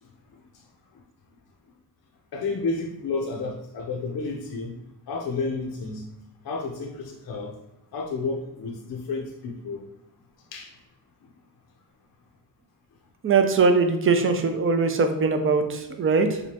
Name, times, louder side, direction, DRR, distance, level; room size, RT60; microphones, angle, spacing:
voice 1, 2.3-6.0 6.4-7.5 7.9-9.8 10.5-10.7, left 3 dB, 55° left, -1 dB, 0.7 m, -31 dB
voice 2, 13.2-16.4, right 4 dB, 30° right, 7 dB, 0.5 m, -21 dB
4.9 x 2.2 x 2.8 m, 0.94 s
cardioid pair, 105°, 44 cm